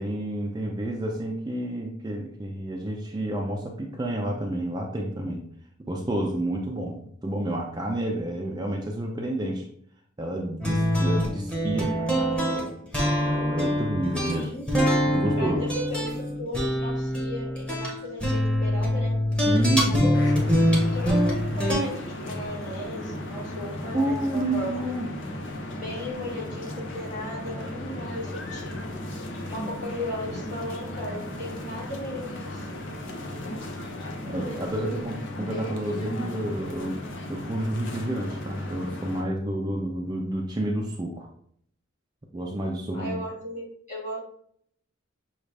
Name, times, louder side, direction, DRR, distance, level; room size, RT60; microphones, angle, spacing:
voice 1, 0.0-5.5 5.9-9.6 10.2-14.5 15.1-15.6 19.5-20.1 23.9-25.1 34.3-37.0 37.3-41.3 42.3-43.2, right 1 dB, 20° right, 0 dB, 0.4 m, -30 dB
sound 1, 10.6-21.8, equal, 5° left, 0.9 m, -24 dB
voice 2, 14.3-14.7 15.4-19.2 19.8-20.5 20.9-24.9 25.7-28.9 29.5-32.7 42.9-44.2, left 1 dB, 40° left, -4 dB, 2.0 m, -36 dB
sound 2, 20.1-39.2, left 1 dB, 65° left, 0.7 m, -36 dB
6.2 x 2.4 x 3.3 m, 0.64 s
head